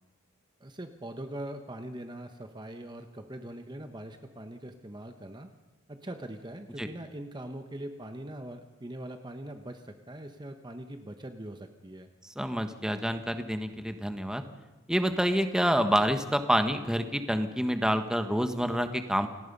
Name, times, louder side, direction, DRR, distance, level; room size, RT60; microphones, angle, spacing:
voice 1, 0.6-5.5 5.9-12.1, right 1 dB, 20° right, 6 dB, 1.1 m, -42 dB
voice 2, 12.4-14.4 14.9-19.3, equal, 5° right, 7 dB, 1.3 m, -27 dB
29.0 x 18.5 x 5.4 m, 1.2 s
head